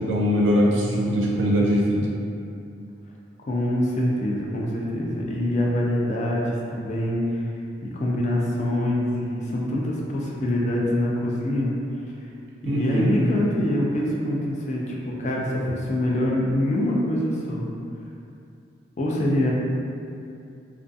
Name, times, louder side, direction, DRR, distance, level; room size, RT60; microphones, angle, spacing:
voice 1, 0.0-2.1 12.7-13.1, equal, 75° right, -4 dB, 0.5 m, -21 dB
voice 2, 3.5-7.5 7.8-11.7 12.6-17.7 19.0-19.5, left 1 dB, 35° left, -3 dB, 0.3 m, -25 dB
2.4 x 2.3 x 2.5 m, 2.6 s
head